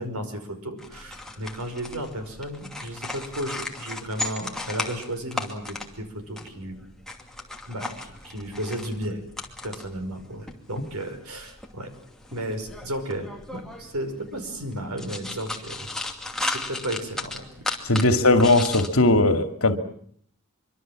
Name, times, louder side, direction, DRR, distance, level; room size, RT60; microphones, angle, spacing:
voice 1, 0.0-6.8 7.7-9.2 9.6-11.9 12.3-15.9 16.4-17.6 18.0-18.5, right 1 dB, 85° right, 7 dB, 5.6 m, -34 dB
sound 1, 0.8-18.9, left 2 dB, ahead, 2.6 m, -36 dB
voice 2, 17.9-19.8, left 2 dB, 70° left, 8 dB, 2.4 m, -19 dB
25.0 x 24.5 x 7.6 m, 0.62 s
head